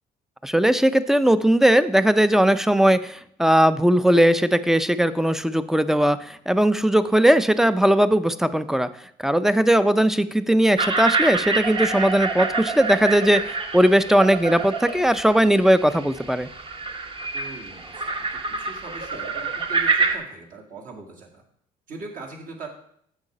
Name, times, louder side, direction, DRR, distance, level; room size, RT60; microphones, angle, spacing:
voice 1, 0.4-8.9 9.2-13.4 13.7-16.5, right 1 dB, ahead, 14 dB, 0.4 m, -19 dB
sound 1, 10.8-20.2, right 4 dB, 30° right, 1.1 m, -27 dB
voice 2, 17.3-21.4 21.9-22.7, right 3 dB, 55° right, -1 dB, 2.0 m, -41 dB
8.1 x 6.6 x 4.9 m, 0.68 s
cardioid pair, 110°, 17 cm